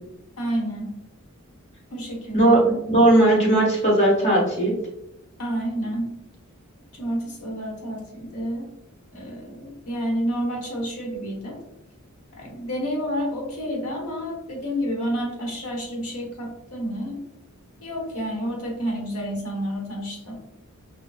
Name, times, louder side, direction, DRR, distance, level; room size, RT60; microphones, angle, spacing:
voice 1, 0.4-1.0 1.9-2.8 5.4-6.2 7.0-8.7 9.1-11.6 12.3-17.2 17.8-20.3, equal, 90° left, -1 dB, 1.2 m, -29 dB
voice 2, 2.9-4.7, right 1 dB, 30° left, -4 dB, 1.3 m, -17 dB
6.0 x 2.2 x 2.4 m, 0.88 s
head